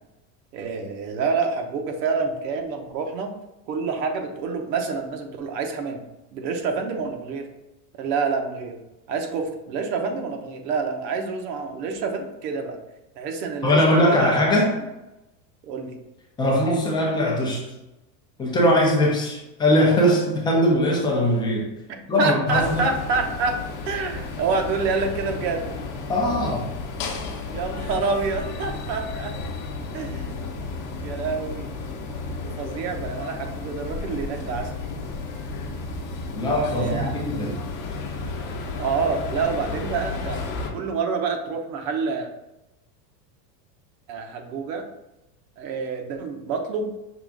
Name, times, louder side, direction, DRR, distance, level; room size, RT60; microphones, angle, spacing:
voice 1, 0.5-3.3 3.7-6.0 6.3-7.5 7.9-8.8 9.1-12.8 13.2-14.3 15.6-16.0 22.2-23.5 23.8-25.7 27.5-29.3 29.9-30.5 31.0-31.7 32.4-34.7 36.7-37.1 38.8-42.3 44.1-44.8 45.6-46.9, right 4 dB, 80° right, 4 dB, 1.0 m, -27 dB
voice 2, 13.6-14.8 16.4-17.7 18.4-21.7 22.1-22.9 26.1-26.7 36.3-37.6, left 1 dB, 10° left, -2 dB, 0.4 m, -21 dB
sound 1, 22.5-40.7, left 3 dB, 40° left, 0.8 m, -33 dB
5.9 x 2.4 x 3.5 m, 0.95 s
supercardioid pair, 150°, 49 cm